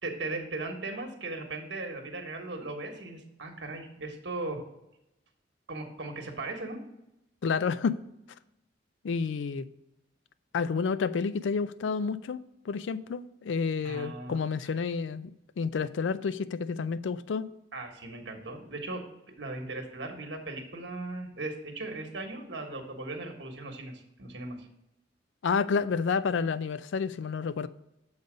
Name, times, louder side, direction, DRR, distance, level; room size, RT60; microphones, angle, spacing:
voice 1, 0.0-4.6 5.7-6.8 13.8-14.4 17.7-19.0 19.4-24.7, right 2 dB, 70° right, 4 dB, 1.3 m, -38 dB
voice 2, 7.4-8.0 9.0-9.7 10.5-12.4 12.7-15.3 15.6-17.5 25.4-27.7, left 5 dB, 85° left, 15 dB, 0.4 m, -29 dB
7.1 x 4.0 x 5.1 m, 0.86 s
head